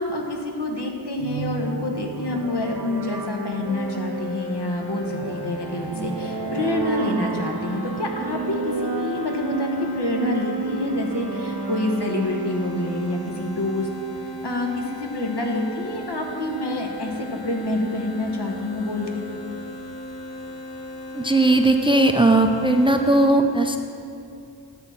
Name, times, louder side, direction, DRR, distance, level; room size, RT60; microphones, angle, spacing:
voice 1, 0.0-13.9 14.4-19.3, left 2 dB, 70° left, 2 dB, 1.1 m, -27 dB
sound 1, 1.2-13.7, right 4 dB, 60° right, 0.8 m, -31 dB
sound 2, 3.6-23.3, equal, 45° left, 2.2 m, -37 dB
voice 2, 21.1-23.8, right 2 dB, 15° right, 5 dB, 0.4 m, -18 dB
10.5 x 4.2 x 7.2 m, 2.6 s
wide cardioid pair, 40°, 42 cm